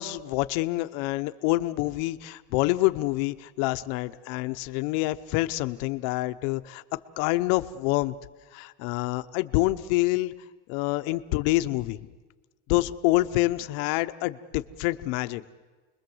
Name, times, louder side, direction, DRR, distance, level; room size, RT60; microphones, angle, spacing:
voice 1, 0.0-6.8 7.2-8.1 8.5-10.3 10.7-12.1 12.7-15.4, left 18 dB, 65° left, 11 dB, 1.0 m, -27 dB
29.5 x 21.5 x 7.9 m, 1.3 s
cardioid pair, 175°, 43 cm